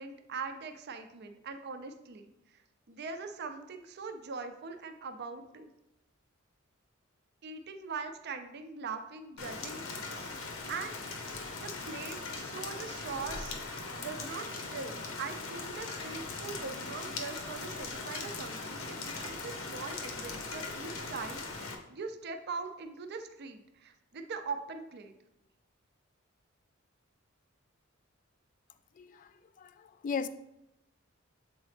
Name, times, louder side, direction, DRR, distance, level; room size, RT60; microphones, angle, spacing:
voice 1, 0.0-2.3 2.5-2.6 2.9-5.7 7.4-10.3 10.7-11.1 11.6-25.1, right 4 dB, 55° right, 0.5 m, -42 dB
Rain, 9.4-21.7, left 3 dB, 90° left, 0.8 m, -40 dB
voice 2, 29.0-29.3 29.6-30.3, left 5 dB, 40° left, 0.3 m, -36 dB
7.2 x 4.0 x 3.2 m
head